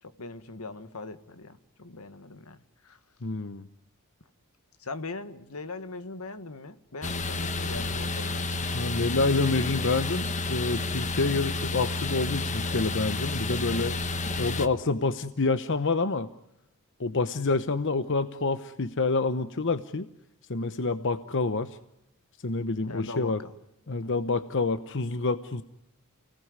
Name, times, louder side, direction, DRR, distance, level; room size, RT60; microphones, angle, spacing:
voice 1, 0.0-2.6 2.8-3.0 4.8-8.6 14.0-14.2 22.9-23.5 24.0-24.1, left 3 dB, 85° left, 11 dB, 1.7 m, -40 dB
voice 2, 3.2-3.7 8.7-14.0 14.4-16.3 17.0-20.1 20.5-21.8 22.4-23.4 23.9-25.6, left 3 dB, 60° left, 11 dB, 0.9 m, -27 dB
sound 1, 7.0-14.7, left 2 dB, 35° left, 1.2 m, -30 dB
29.5 x 18.0 x 9.6 m, 0.86 s
head